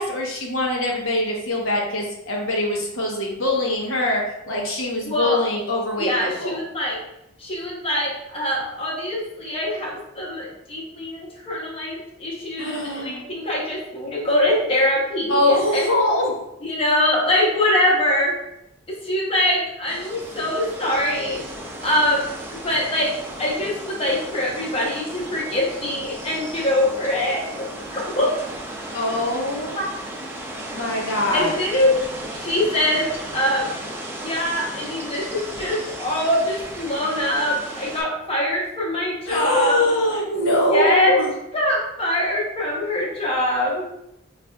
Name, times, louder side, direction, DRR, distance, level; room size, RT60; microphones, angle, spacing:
voice 1, 0.0-4.2 4.5-6.6 12.6-13.2 15.3-16.4 28.9-29.7 30.7-31.6 39.3-41.3, left 1 dB, 80° left, -1 dB, 0.9 m, -23 dB
voice 2, 5.0-5.4 6.0-7.0 7.4-15.9 16.6-18.3 18.9-21.4 21.8-23.1 23.4-27.6 27.9-28.3 29.7-29.8 31.3-33.7 34.2-39.8 40.7-41.2 41.5-43.8, left 1 dB, 30° left, -4 dB, 0.9 m, -23 dB
sound 1, 19.9-38.0, right 1 dB, 10° right, 0.5 m, -35 dB
5.3 x 2.5 x 2.3 m, 0.83 s
head